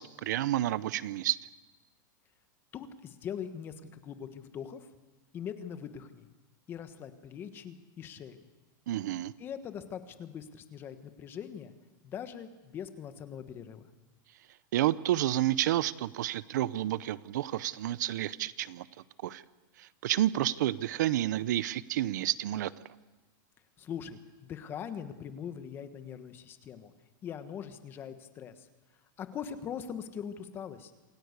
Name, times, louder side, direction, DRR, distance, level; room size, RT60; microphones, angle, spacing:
voice 1, 0.0-1.4 8.9-9.3 14.7-18.9 19.2-19.4 19.8-22.7, right 13 dB, 65° right, 18 dB, 0.8 m, -30 dB
voice 2, 2.7-4.9 5.3-6.3 6.7-8.4 9.4-11.7 12.0-13.9 23.8-26.9 27.2-28.7 29.2-30.9, left 8 dB, 20° left, 10 dB, 1.3 m, -41 dB
27.0 x 17.0 x 8.2 m, 1.2 s
supercardioid pair, 165°, 11 cm